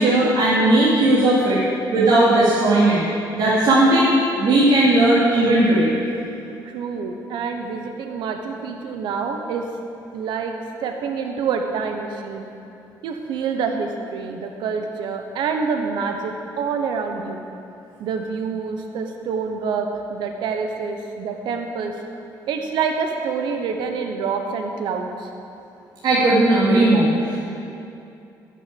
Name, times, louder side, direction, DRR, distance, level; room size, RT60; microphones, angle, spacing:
voice 1, 0.0-1.6 1.9-3.0 3.3-4.1 4.4-5.9 26.0-27.4, right 2 dB, 65° right, -8 dB, 2.7 m, -16 dB
voice 2, 6.6-9.7 10.1-12.5 13.0-17.4 18.0-21.9 22.5-25.3, right 5 dB, 90° right, 4 dB, 1.1 m, -27 dB
12.5 x 7.1 x 8.6 m, 2.7 s
cardioid pair, 115°, 8 cm